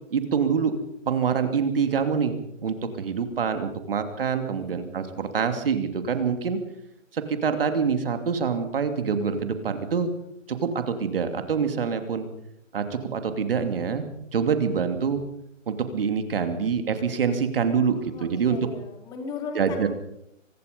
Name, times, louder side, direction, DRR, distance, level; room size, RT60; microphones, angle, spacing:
voice 1, 0.1-0.7 1.1-6.6 7.1-10.1 10.5-12.3 12.7-15.2 15.7-18.6 19.5-19.9, right 6 dB, 45° right, 8 dB, 2.8 m, -26 dB
voice 2, 4.5-5.3 17.9-19.9, left 5 dB, 10° left, 4 dB, 2.7 m, -38 dB
24.0 x 20.5 x 5.3 m, 0.78 s
hypercardioid pair, 170°, 39 cm